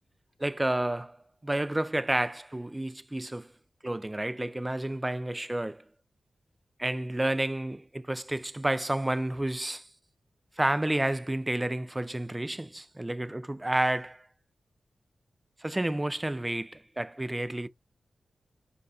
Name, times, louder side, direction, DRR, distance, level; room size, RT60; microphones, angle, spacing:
voice 1, 0.4-3.5 3.8-5.8 6.8-9.9 10.6-14.3 15.6-17.7, right 1 dB, 15° right, 0.4 m, -30 dB
4.9 x 2.2 x 3.8 m
cardioid pair, 70°, 0 cm